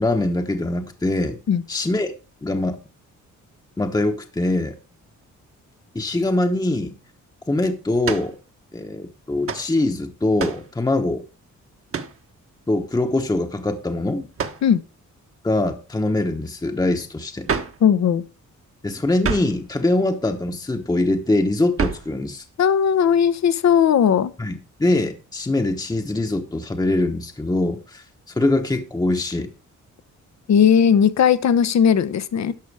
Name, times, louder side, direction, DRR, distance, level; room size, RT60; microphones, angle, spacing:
voice 1, 0.0-1.4 1.7-2.1 2.4-2.8 3.8-4.8 5.9-6.9 7.5-8.4 8.7-11.2 12.7-14.3 15.4-17.5 18.8-22.4 24.4-28.0 28.3-29.5, left 2 dB, 15° left, 1.0 m, -23 dB
sound 1, 8.0-8.4 9.5-9.7 10.4-10.7 11.9-12.2 14.4-14.7 17.5-17.8 19.2-19.6 21.8-22.1, right 6 dB, 45° right, 1.3 m, -27 dB
voice 2, 17.8-18.2 22.6-24.3 30.5-32.5, left 8 dB, 60° left, 0.9 m, -17 dB
11.5 x 6.3 x 4.7 m
cardioid pair, 100°, 30 cm